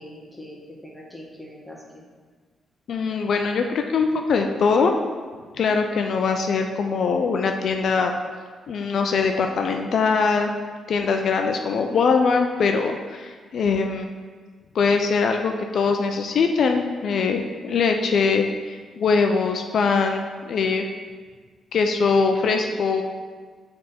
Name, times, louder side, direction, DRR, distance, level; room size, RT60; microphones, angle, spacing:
voice 1, 0.0-2.0, left 1 dB, ahead, -4 dB, 1.5 m, -42 dB
voice 2, 2.9-5.0 5.6-8.1 8.7-10.5 10.9-14.1 14.7-20.9 21.7-23.0, left 5 dB, 65° left, 4 dB, 0.4 m, -22 dB
6.4 x 3.5 x 4.2 m, 1.5 s
cardioid pair, 70°, 0 cm